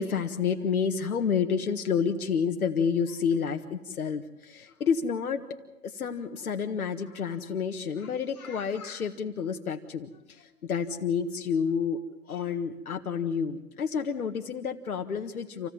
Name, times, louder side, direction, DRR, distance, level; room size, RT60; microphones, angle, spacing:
voice 1, 0.0-12.0 12.3-15.7, left 6 dB, 70° left, 5 dB, 1.7 m, -29 dB
27.0 x 17.0 x 7.3 m, 1.0 s
hypercardioid pair, 135°, 45 cm